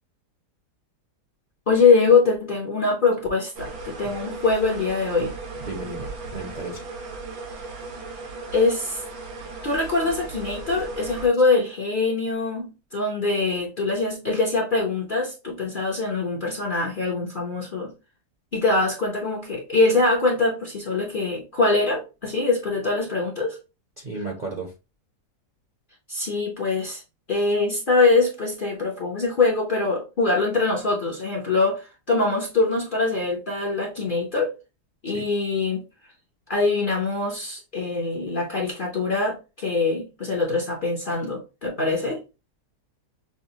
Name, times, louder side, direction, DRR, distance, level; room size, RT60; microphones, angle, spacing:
voice 1, 1.7-5.3 8.5-9.0 9.6-17.9 18.5-23.6 26.1-27.0 27.3-34.5 35.0-35.8 36.5-42.2, left 3 dB, 45° left, 0.7 m, -23 dB
sound 1, 3.5-11.3, right 3 dB, 80° right, 1.6 m, -36 dB
voice 2, 5.6-6.8 7.7-7.9 24.0-24.7 35.1-35.3, right 3 dB, 40° right, 0.7 m, -34 dB
6.1 x 2.1 x 2.7 m
omnidirectional pair, 1.7 m